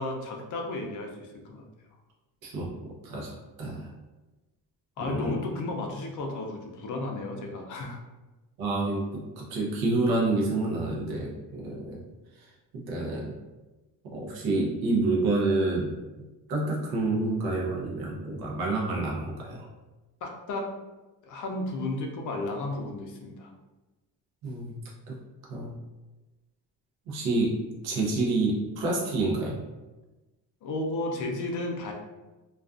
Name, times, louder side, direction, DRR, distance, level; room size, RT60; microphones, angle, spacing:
voice 1, 0.0-1.6 5.0-8.0 20.2-20.7 21.2-23.5 30.6-31.9, left 2 dB, 45° left, 1 dB, 0.5 m, -33 dB
voice 2, 3.0-3.9 5.0-5.3 8.6-12.0 12.7-13.3 14.0-15.9 16.5-19.6 24.4-24.7 25.1-25.2 25.5-25.8 27.1-27.5 27.8-29.6, right 2 dB, 60° right, -3 dB, 0.7 m, -28 dB
2.4 x 2.3 x 2.4 m, 1.1 s
cardioid pair, 140°, 42 cm